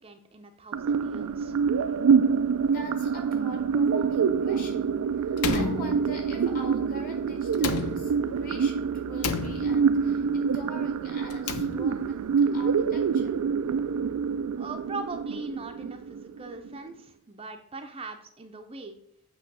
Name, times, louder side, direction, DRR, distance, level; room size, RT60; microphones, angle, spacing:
voice 1, 0.0-1.5 14.6-19.0, right 3 dB, 25° right, 5 dB, 0.6 m, -40 dB
sound 1, 0.7-16.7, right 6 dB, 90° right, 0.4 m, -26 dB
voice 2, 2.5-13.5, equal, 40° left, 2 dB, 1.9 m, -43 dB
Slam, 5.4-6.5 7.5-8.5 9.2-10.1 11.2-12.2, left 5 dB, 85° left, 0.6 m, -32 dB
8.4 x 3.0 x 6.1 m, 0.71 s
head